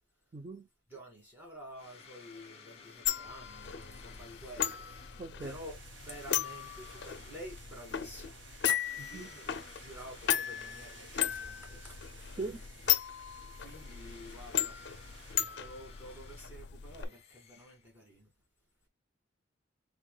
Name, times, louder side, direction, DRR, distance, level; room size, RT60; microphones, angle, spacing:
voice 1, 0.3-0.7 5.2-5.6 9.1-9.3 12.4-12.6, right 3 dB, 35° right, 0.4 m, -40 dB
voice 2, 0.9-9.5 9.7-12.4 13.6-14.8 15.6-18.3, equal, 10° right, 2.4 m, -50 dB
sound 1, 1.7-11.8 12.2-18.2, left 6 dB, 35° left, 1.2 m, -57 dB
sound 2, 3.0-17.0, left 10 dB, 60° left, 0.5 m, -36 dB
sound 3, 5.4-15.4, right 4 dB, 75° right, 1.2 m, -56 dB
4.6 x 4.0 x 2.2 m
head